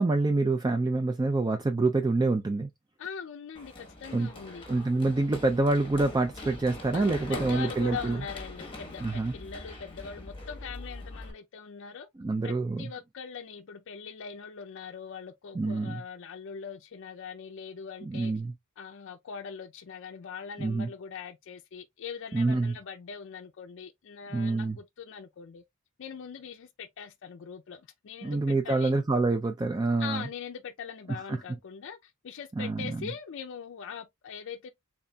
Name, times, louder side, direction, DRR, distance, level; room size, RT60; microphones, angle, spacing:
voice 1, 0.0-2.7 4.1-4.3 4.7-8.2 9.0-9.3 12.2-12.9 15.6-16.0 18.1-18.5 20.6-20.9 22.3-22.8 24.3-24.8 28.2-30.3 31.1-31.4 32.6-33.1, right 3 dB, 20° right, 0.4 m, -27 dB
voice 2, 3.0-4.7 6.9-12.1 12.4-18.3 18.8-25.6 26.0-28.9 30.0-34.7, left 6 dB, 60° left, 0.4 m, -42 dB
Run, 3.5-11.3, left 2 dB, 25° left, 1.1 m, -42 dB
4.0 x 3.5 x 2.2 m
head